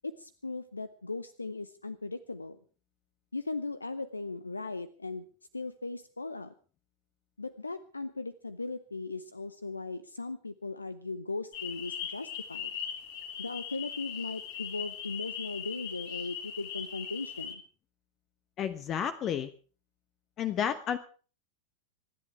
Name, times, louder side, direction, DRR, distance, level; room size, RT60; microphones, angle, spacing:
voice 1, 0.0-2.6 3.3-5.2 5.5-6.5 7.4-12.7 13.4-17.6, left 3 dB, 80° left, 15 dB, 0.7 m, -38 dB
sound 1, 11.5-17.5, left 8 dB, 50° left, 2.9 m, -39 dB
voice 2, 18.6-19.5 20.4-21.0, left 9 dB, 30° left, 12 dB, 0.9 m, -31 dB
26.0 x 10.5 x 4.6 m, 0.40 s
figure-of-eight pair, 90°, 0 cm